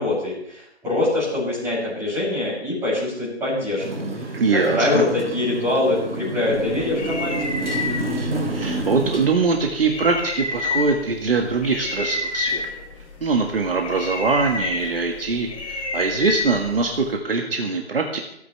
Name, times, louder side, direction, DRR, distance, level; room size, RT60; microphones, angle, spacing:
voice 1, 0.0-4.3 4.7-7.5, left 2 dB, 5° right, -9 dB, 7.6 m, -24 dB
Motorcycle, 3.8-9.3, right 2 dB, 80° right, 3.5 m, -28 dB
voice 2, 4.3-5.0 8.5-12.6 13.2-18.2, right 4 dB, 55° right, 2 dB, 1.8 m, -22 dB
sound 1, 6.5-17.2, left 3 dB, 30° left, 4.0 m, -30 dB
28.0 x 9.6 x 3.4 m, 0.75 s
figure-of-eight pair, 150°, 35 cm